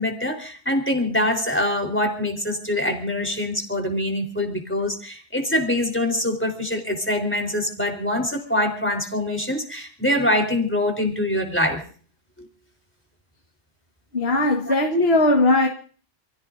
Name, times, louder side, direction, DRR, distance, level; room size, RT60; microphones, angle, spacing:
voice 1, 0.0-11.8 14.7-14.8, left 1 dB, 10° left, 3.8 m, -24 dB
voice 2, 14.1-15.7, left 2 dB, 65° left, 1.8 m, -19 dB
28.5 x 16.5 x 2.6 m
omnidirectional pair, 1.1 m